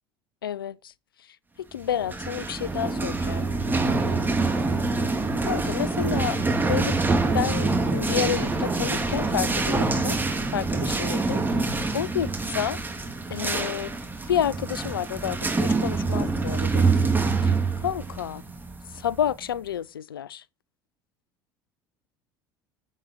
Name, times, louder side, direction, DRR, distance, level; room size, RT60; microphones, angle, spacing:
voice 1, 0.4-0.9 1.6-3.5 5.4-7.0 7.3-10.2 10.5-11.4 11.9-12.8 13.3-13.9 14.3-16.9 17.4-18.4 18.9-20.4, left 9 dB, 90° left, 0.4 m, -30 dB
sound 1, 1.9-19.3, right 3 dB, 15° right, 2.3 m, -25 dB
7.5 x 7.2 x 4.7 m
hypercardioid pair, 70°, 11 cm